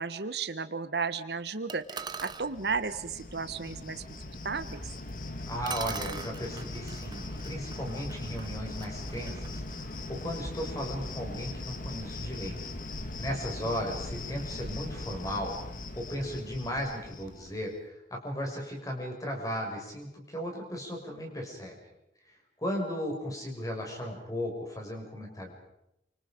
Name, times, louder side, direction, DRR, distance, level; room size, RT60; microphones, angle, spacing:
voice 1, 0.0-4.0 4.4-4.8, right 5 dB, 65° right, 12 dB, 1.2 m, -34 dB
sound 1, 1.7-2.5 5.1-5.2 5.7-10.5, right 6 dB, 25° right, 0.9 m, -43 dB
Cricket, 2.0-17.7, left 2 dB, 50° left, 1.8 m, -40 dB
voice 2, 5.5-12.7 13.2-15.6 16.0-21.8 22.2-25.5, equal, 20° left, 1 dB, 6.1 m, -36 dB
29.0 x 25.5 x 5.2 m, 0.84 s
head